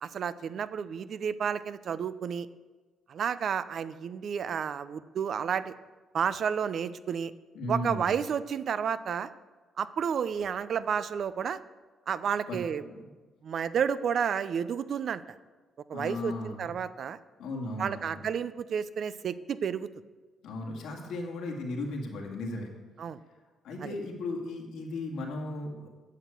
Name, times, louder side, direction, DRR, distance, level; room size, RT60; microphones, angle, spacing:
voice 1, 0.0-2.5 3.1-5.7 6.1-7.3 7.7-9.3 9.8-11.6 12.1-12.8 13.4-15.2 15.9-17.2 17.8-19.9 23.0-23.2 23.8-23.9, right 7 dB, 60° right, 15 dB, 0.5 m, -31 dB
voice 2, 7.5-8.1 12.5-12.6 12.9-13.0 15.9-16.7 17.4-18.2 20.4-22.7 23.6-25.9, left 2 dB, 85° left, 0 dB, 2.2 m, -36 dB
9.5 x 6.4 x 8.3 m, 1.3 s
cardioid pair, 90°, 0 cm